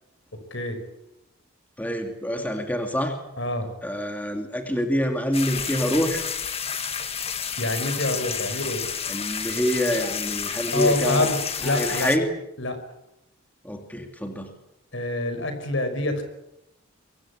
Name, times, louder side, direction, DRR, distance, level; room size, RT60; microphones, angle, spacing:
voice 1, 1.8-3.2 3.8-6.3 9.1-11.3 11.6-12.3 13.6-14.5, equal, 10° left, 4 dB, 2.5 m, -26 dB
voice 2, 3.4-3.7 7.6-8.9 10.7-12.1 12.6-12.8 14.9-16.2, left 1 dB, 60° left, 8 dB, 5.7 m, -26 dB
sound 1, 5.3-12.2, left 7 dB, 30° left, 1.9 m, -30 dB
24.0 x 23.5 x 8.6 m, 0.86 s
head